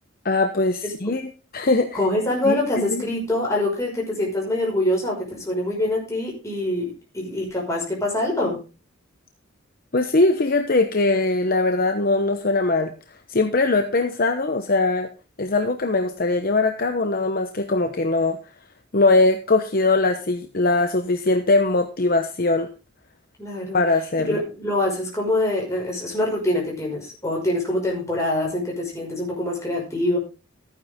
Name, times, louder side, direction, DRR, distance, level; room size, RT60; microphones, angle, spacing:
voice 1, 0.2-1.3 1.5-2.0 2.4-3.0 9.9-12.9 13.3-15.1 15.4-18.4 18.9-22.7 23.7-24.4, left 2 dB, 45° left, 6 dB, 1.0 m, -21 dB
voice 2, 1.9-8.6 23.4-23.8 24.3-30.2, left 1 dB, 15° left, -2 dB, 5.7 m, -24 dB
14.0 x 9.5 x 3.7 m, 0.32 s
head